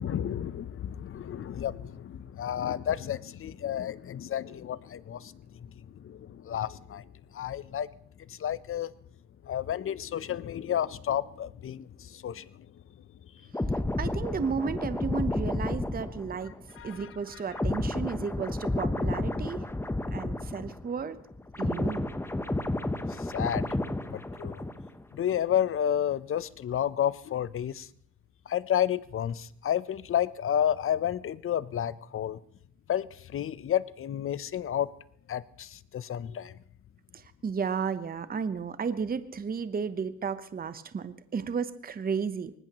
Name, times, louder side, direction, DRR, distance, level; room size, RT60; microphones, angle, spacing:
voice 1, 0.0-5.4 5.9-7.0 7.3-7.9 8.3-8.9 9.4-12.7 16.8-17.4 23.2-23.7 24.1-24.7 25.1-27.9 28.5-32.4 32.9-34.9 35.3-36.5, left 10 dB, 45° left, 0.6 m, -31 dB
sound 1, 13.5-21.0 21.3-25.0 25.3-25.6, left 1 dB, 10° left, 0.8 m, -31 dB
voice 2, 14.0-16.5 16.8-19.7 20.1-21.2 21.6-22.1 37.1-42.5, right 6 dB, 30° right, 0.8 m, -33 dB
24.0 x 19.0 x 3.0 m
cardioid pair, 90°, 30 cm